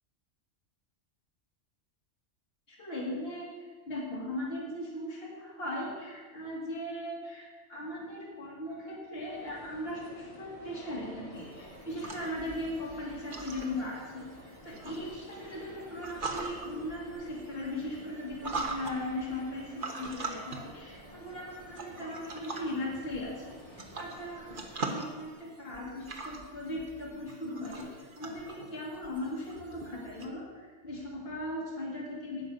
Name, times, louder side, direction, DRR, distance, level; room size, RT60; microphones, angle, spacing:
voice 1, 2.7-14.3 14.6-23.6 24.0-32.5, left 1 dB, 55° left, -5 dB, 2.4 m, -38 dB
sound 1, 9.1-24.8, left 1 dB, 30° left, 2.6 m, -51 dB
sound 2, 11.3-30.3, right 3 dB, 45° right, 1.4 m, -42 dB
17.5 x 6.3 x 5.5 m, 1.4 s
omnidirectional pair, 1.2 m